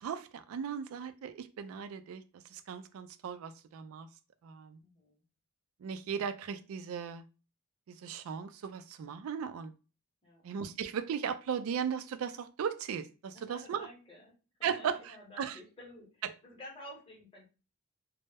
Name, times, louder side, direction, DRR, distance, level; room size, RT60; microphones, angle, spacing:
voice 1, 0.0-2.2 2.5-4.1 4.4-4.8 5.8-7.2 7.9-9.7 10.4-13.9 14.6-15.0 15.4-15.6, right 7 dB, 75° right, 0.3 m, -37 dB
voice 2, 4.8-5.2 10.2-10.4 13.3-14.3 14.6-17.4, left 1 dB, 25° left, 0.8 m, -51 dB
2.0 x 2.0 x 3.4 m
head